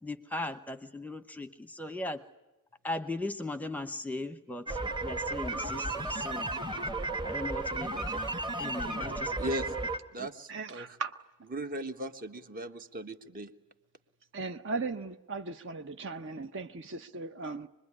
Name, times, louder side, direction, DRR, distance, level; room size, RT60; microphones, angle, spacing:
voice 1, 0.0-2.2 2.8-6.5 6.9-7.0 7.2-8.3 8.6-9.3 10.2-10.3, left 2 dB, 5° left, 0.9 m, -38 dB
sound 1, 4.7-10.0, right 2 dB, 20° right, 1.6 m, -34 dB
voice 2, 8.8-9.2 10.5-11.1 14.3-17.7, right 3 dB, 55° right, 0.8 m, -38 dB
voice 3, 9.4-9.7 10.1-11.0 11.5-13.5, right 1 dB, 40° right, 1.5 m, -38 dB
25.5 x 21.5 x 9.8 m
head